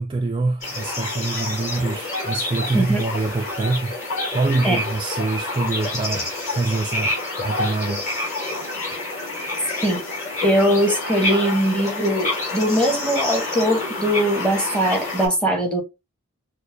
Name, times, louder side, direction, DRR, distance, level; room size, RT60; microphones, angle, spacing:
voice 1, 0.0-3.9 4.3-8.1, right 3 dB, 20° right, 0.3 m, -25 dB
sound 1, 0.6-15.3, left 2 dB, 35° left, 2.7 m, -28 dB
voice 2, 10.4-15.8, equal, 5° left, 1.1 m, -21 dB
6.4 x 2.2 x 2.6 m
head